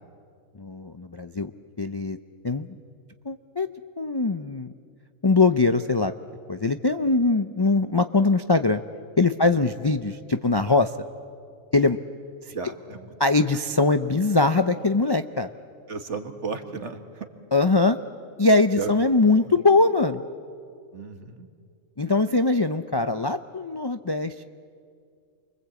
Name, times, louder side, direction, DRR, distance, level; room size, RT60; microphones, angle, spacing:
voice 1, 0.6-1.5 1.8-2.2 2.4-2.8 3.2-3.7 4.0-4.7 5.2-6.1 6.5-8.8 9.2-10.9 11.7-12.0 13.2-15.5 17.5-18.0 18.4-20.2 22.0-24.4, left 3 dB, 35° left, 8 dB, 0.4 m, -22 dB
voice 2, 12.5-13.1 15.9-17.3 18.7-18.9 19.4-19.6 20.9-21.5, right 5 dB, 55° right, 7 dB, 2.0 m, -34 dB
29.0 x 24.0 x 8.4 m, 2.3 s
omnidirectional pair, 1.4 m